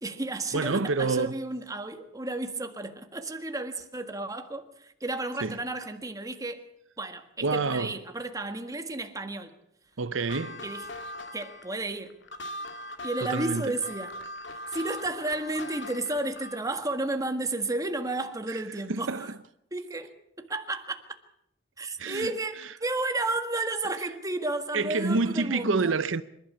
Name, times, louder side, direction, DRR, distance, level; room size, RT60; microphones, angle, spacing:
voice 1, 0.0-6.6 7.0-9.5 10.6-10.9 11.3-12.2 13.0-14.1 14.7-19.3 19.7-21.0 21.8-25.9, right 2 dB, 20° right, 1.7 m, -32 dB
voice 2, 0.5-1.3 5.4-5.6 7.4-8.0 10.0-10.6 13.2-13.7 18.5-18.6 18.9-19.3 22.0-22.3 24.7-26.2, right 3 dB, 75° right, 0.8 m, -27 dB
sound 1, 10.1-16.7, left 1 dB, 65° left, 2.0 m, -40 dB
26.5 x 11.5 x 8.5 m
head